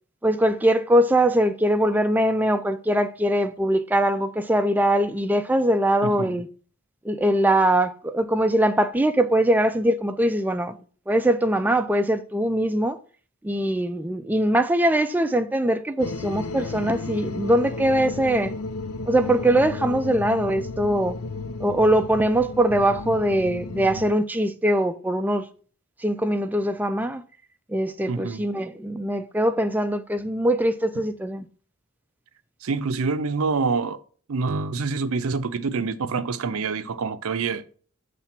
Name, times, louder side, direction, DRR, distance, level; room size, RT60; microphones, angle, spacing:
voice 1, 0.2-6.5 7.0-10.8 11.1-13.0 13.4-18.5 19.1-21.2 21.6-25.5 26.0-27.2 27.7-31.5, right 1 dB, 10° right, 0.3 m, -22 dB
voice 2, 6.0-6.4 28.1-28.4 32.6-34.0 34.3-37.6, right 4 dB, 75° right, 0.5 m, -26 dB
sound 1, 16.0-24.1, left 3 dB, 70° left, 0.5 m, -33 dB
7.1 x 3.3 x 5.8 m
head